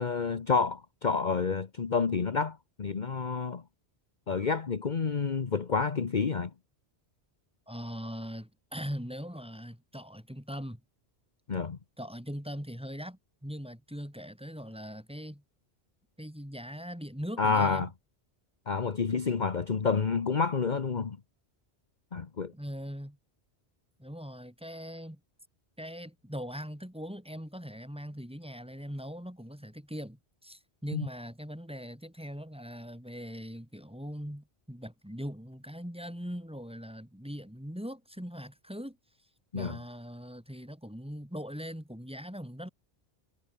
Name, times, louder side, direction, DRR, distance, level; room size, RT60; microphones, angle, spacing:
voice 1, 0.0-3.6 4.3-6.5 11.5-11.8 17.4-17.9 18.7-21.2 22.1-22.5 30.9-31.1 39.5-39.8, left 5 dB, 45° left, 1.2 m, -29 dB
voice 2, 7.7-10.8 12.0-15.4 16.2-17.9 22.5-23.2 24.0-25.2 25.8-39.0 39.5-42.7, equal, 5° right, 3.6 m, -41 dB
omnidirectional pair, 1.1 m